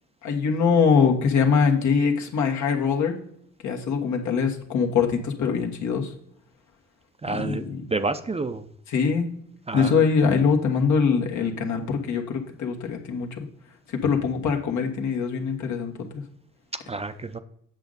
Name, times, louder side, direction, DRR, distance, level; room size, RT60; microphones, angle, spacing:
voice 1, 0.2-3.2 3.6-6.1 7.3-7.8 8.9-9.3 9.7-13.4 14.0-16.2, left 5 dB, 70° left, 2 dB, 1.5 m, -23 dB
voice 2, 7.2-8.7 9.7-10.1 16.9-17.4, right 3 dB, 20° right, 9 dB, 0.5 m, -29 dB
8.2 x 6.3 x 4.0 m, 0.67 s
cardioid pair, 90°, 30 cm